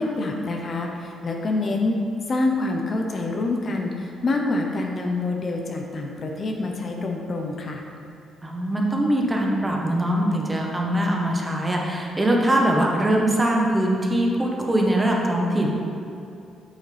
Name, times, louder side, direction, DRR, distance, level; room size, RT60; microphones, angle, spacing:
voice 1, 0.0-2.0 2.3-7.8, left 2 dB, 45° left, 1 dB, 0.8 m, -26 dB
voice 2, 8.4-15.7, right 1 dB, 15° right, -1 dB, 1.1 m, -22 dB
8.3 x 6.3 x 3.4 m, 2.6 s
cardioid pair, 90°, 0 cm